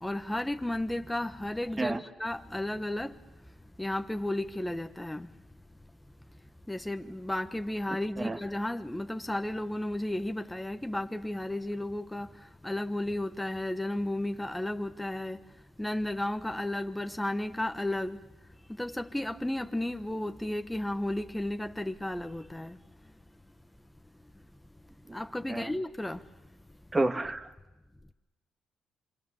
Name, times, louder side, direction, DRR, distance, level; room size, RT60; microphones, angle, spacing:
voice 1, 0.0-3.2 3.8-5.3 6.7-12.3 12.6-15.4 15.8-18.2 18.8-22.8 25.1-26.2, left 1 dB, 10° left, 1.0 m, -33 dB
voice 2, 26.9-27.5, right 2 dB, 20° right, 1.4 m, -30 dB
26.0 x 25.5 x 7.0 m
cardioid pair, 90°, 0 cm